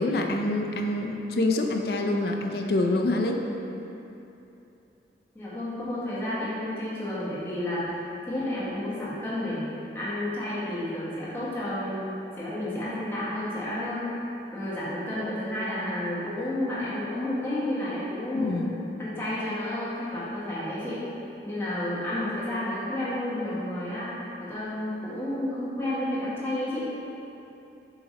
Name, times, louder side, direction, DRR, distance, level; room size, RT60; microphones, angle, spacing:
voice 1, 0.0-3.4 18.3-18.7, left 2 dB, 60° left, 2 dB, 0.5 m, -26 dB
voice 2, 5.3-8.0 8.3-9.7 9.9-14.1 14.5-18.7 19.0-21.0 21.4-24.1 24.4-26.9, left 1 dB, 15° left, -10 dB, 1.4 m, -31 dB
7.7 x 2.9 x 4.1 m, 2.9 s
head